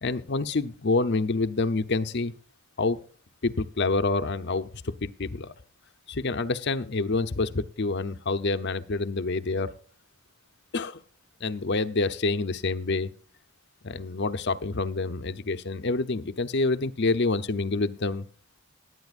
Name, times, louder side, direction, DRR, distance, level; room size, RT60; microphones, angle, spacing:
voice 1, 0.0-2.3 2.8-3.0 3.4-4.7 5.0-5.5 6.1-9.7 10.7-11.0 11.4-13.1 13.8-18.3, left 3 dB, 55° left, 9 dB, 0.8 m, -27 dB
19.0 x 9.6 x 2.5 m, 0.43 s
head